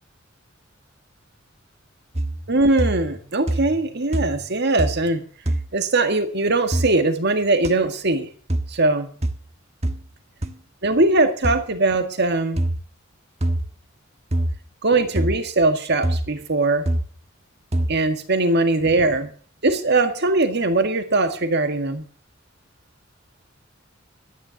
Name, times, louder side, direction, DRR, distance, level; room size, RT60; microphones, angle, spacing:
sound 1, 2.2-2.5 2.8-3.2 3.5-3.9 4.1-4.5 4.8-5.1 5.5-5.7 6.7-6.9 7.6-7.7 8.5-8.7 9.2-9.4 9.8-10.0 10.4-10.5 11.4-11.6 12.6-12.8 13.4-13.7 14.3-14.6 15.2-15.4 16.0-16.3 16.9-17.1 17.7-18.0, right 1 dB, 35° right, 1.3 m, -24 dB
voice 1, 2.5-5.2 5.7-8.3 8.7-9.1 10.8-12.6 14.8-16.8 17.9-19.3 19.6-22.0, right 2 dB, 55° right, 8 dB, 1.8 m, -20 dB
12.5 x 10.5 x 7.1 m, 0.43 s
head